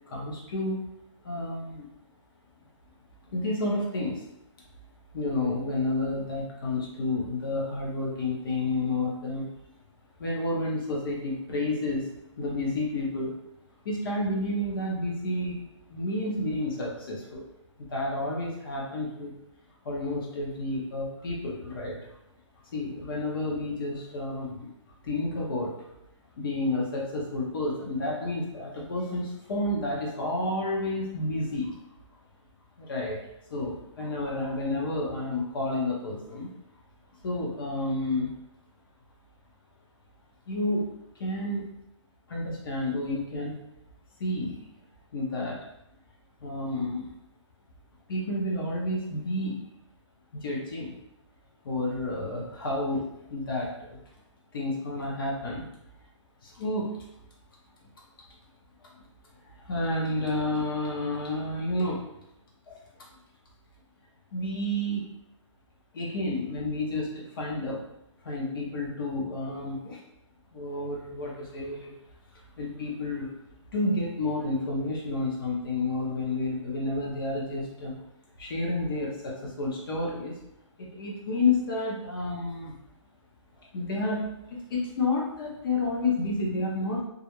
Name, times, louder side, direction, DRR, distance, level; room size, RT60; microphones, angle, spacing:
voice 1, 0.1-0.8 1.2-1.9 3.3-4.2 5.1-9.5 10.2-12.1 12.4-13.4 13.8-15.6 15.9-17.4 17.8-19.3 19.8-22.0 22.7-24.7 25.0-25.9 26.4-31.8 32.8-33.2 33.5-36.5 37.2-38.3 40.5-40.9 41.2-41.7 42.3-43.6 44.2-44.6 45.1-45.6 46.4-47.0 48.1-49.6 50.3-50.9 51.6-54.0 54.5-55.6 56.4-57.0 59.6-62.0 62.7-62.8 64.3-65.0 65.9-67.8 68.2-70.0 70.5-71.9 72.6-73.3 73.7-78.0 78.4-80.4 80.8-82.7 83.6-87.0, left 2 dB, 45° left, -2 dB, 0.6 m, -30 dB
2.3 x 2.0 x 2.9 m, 0.84 s
hypercardioid pair, 160°, 16 cm